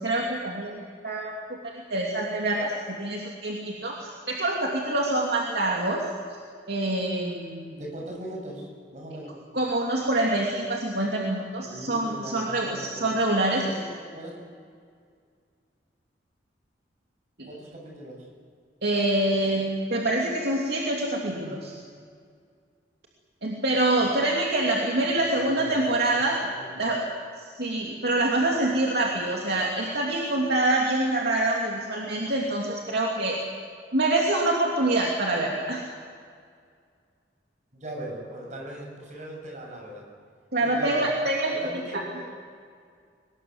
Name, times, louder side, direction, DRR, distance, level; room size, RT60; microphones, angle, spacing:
voice 1, 0.0-6.0 6.7-7.8 9.5-13.7 17.4-17.5 18.8-21.7 23.4-27.0 27.4-33.4 33.9-35.8 40.5-41.5 41.9-42.0, right 2 dB, 65° right, -2 dB, 2.8 m, -26 dB
voice 2, 7.8-9.3 11.6-13.0 13.6-14.4 17.4-18.3 25.1-26.0 37.7-40.0 40.6-41.0 41.6-42.3, right 1 dB, 45° right, 0 dB, 6.8 m, -39 dB
23.5 x 20.0 x 8.0 m, 2.1 s
head